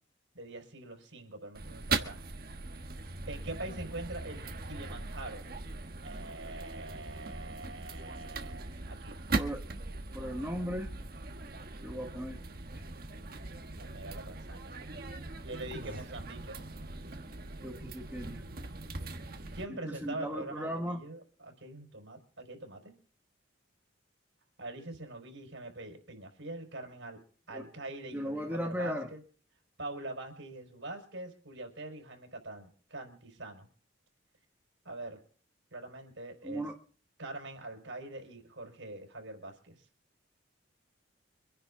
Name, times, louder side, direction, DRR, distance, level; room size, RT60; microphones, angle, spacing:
voice 1, 0.3-2.2 3.3-5.5 6.0-9.2 13.8-14.8 15.4-16.6 19.5-22.9 24.6-27.2 27.5-29.2 29.8-33.7 34.8-35.2 35.7-36.6 37.2-39.8, right 2 dB, 75° right, 3 dB, 4.8 m, -44 dB
sound 1, 1.5-19.7, right 3 dB, 50° right, 1.3 m, -40 dB
voice 2, 10.1-10.9 11.8-12.4 12.7-12.8 17.6-18.4 19.7-21.0 27.5-27.7 28.1-29.1 36.4-36.8, equal, 10° right, 1 dB, 1.7 m, -37 dB
25.5 x 10.5 x 3.8 m, 0.42 s
head